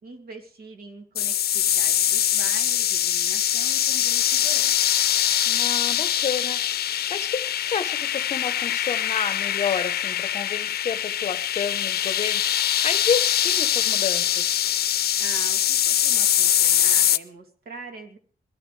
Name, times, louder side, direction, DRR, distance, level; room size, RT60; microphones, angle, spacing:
voice 1, 0.0-4.8 15.2-18.2, right 3 dB, 75° right, 2.3 m, -42 dB
sound 1, 1.2-17.2, left 11 dB, 85° left, 0.5 m, -23 dB
voice 2, 5.5-14.6, left 6 dB, 45° left, 0.9 m, -30 dB
21.0 x 13.5 x 3.2 m
wide cardioid pair, 165°, 16 cm